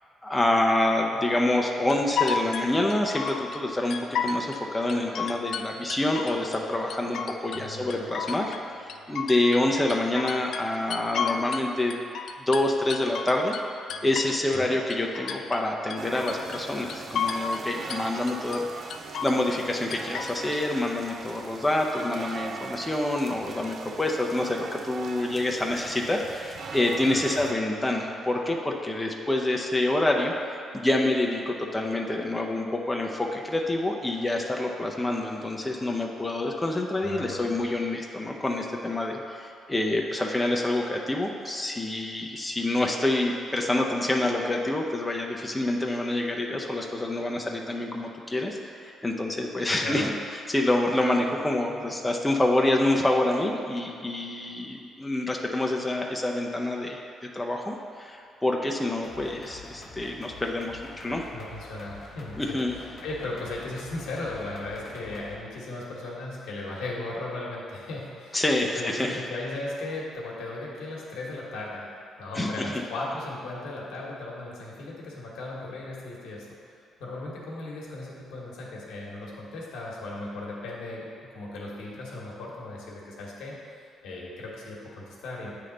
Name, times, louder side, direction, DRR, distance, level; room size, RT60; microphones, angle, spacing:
voice 1, 0.2-8.5 8.8-12.0 12.5-13.6 14.0-18.7 19.2-50.1 50.5-61.3 62.4-62.7 68.3-69.2 72.3-72.5, left 1 dB, 15° left, 0 dB, 0.6 m, -27 dB
sound 1, 1.9-3.6 3.9-4.6 4.9-6.6 6.9-7.6 7.9-11.7 11.9-14.6 14.9-15.6 15.9-16.6 16.9-17.6 17.9-18.6 18.9-19.6 19.9-20.6, left 6 dB, 70° left, 0.3 m, -32 dB
voice 2, 7.5-8.1 14.5-14.7 27.1-27.5 37.0-37.7 49.7-50.1 61.3-68.4 68.7-71.9 72.2-76.5 77.0-81.1 81.3-83.5 84.0-85.5, left 2 dB, 85° left, -4 dB, 1.1 m, -37 dB
sound 2, 16.0-27.5, right 5 dB, 55° right, 0.3 m, -40 dB
sound 3, 59.0-65.4, left 3 dB, 45° left, 0.9 m, -46 dB
8.4 x 3.3 x 3.8 m, 2.4 s
cardioid pair, 90°, 0 cm